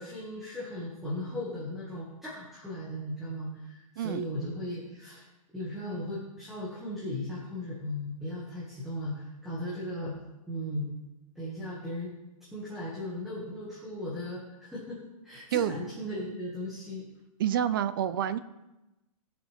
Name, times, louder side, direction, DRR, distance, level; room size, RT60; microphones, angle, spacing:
voice 1, 0.0-5.2 5.5-10.1 10.5-10.9 11.4-12.1 12.5-17.1, left 1 dB, ahead, -8 dB, 1.9 m, -37 dB
voice 2, 17.4-18.4, right 10 dB, 40° right, 14 dB, 0.5 m, -28 dB
20.0 x 7.1 x 3.5 m, 0.99 s
hypercardioid pair, 175°, 18 cm